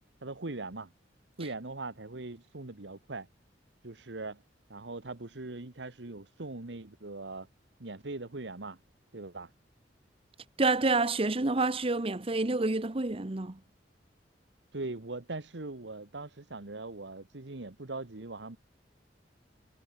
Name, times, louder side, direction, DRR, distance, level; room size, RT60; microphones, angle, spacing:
voice 1, 0.2-0.9 1.4-3.3 3.8-4.4 4.7-7.5 7.8-8.8 9.1-9.5 14.7-18.6, right 2 dB, 75° right, 1.4 m, -40 dB
voice 2, 10.6-13.6, right 3 dB, 30° right, 1.0 m, -28 dB
head